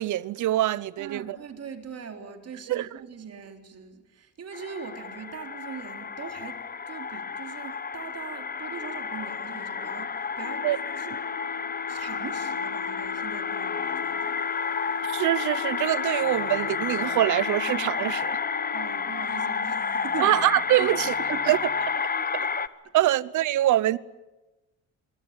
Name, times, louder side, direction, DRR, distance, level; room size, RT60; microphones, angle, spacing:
voice 1, 0.0-1.4 2.7-2.9 10.6-10.8 15.0-18.4 20.2-21.1 21.5-21.6 22.0-22.1 22.6-22.7 22.9-24.0, right 14 dB, 80° right, 0.9 m, -24 dB
voice 2, 1.0-11.2 11.5-11.6 11.9-14.3 18.7-20.4 20.8-21.6 22.4-22.5 22.8-22.9, right 6 dB, 55° right, 3.9 m, -41 dB
sound 1, 4.5-22.7, left 5 dB, 30° left, 1.1 m, -31 dB
Wind instrument woodwind instrument, 10.4-19.1, left 12 dB, 80° left, 1.1 m, -40 dB
Wind instrument woodwind instrument 2, 16.2-21.9, left 6 dB, 55° left, 2.7 m, -47 dB
25.5 x 23.0 x 9.0 m
cardioid pair, 90°, 30 cm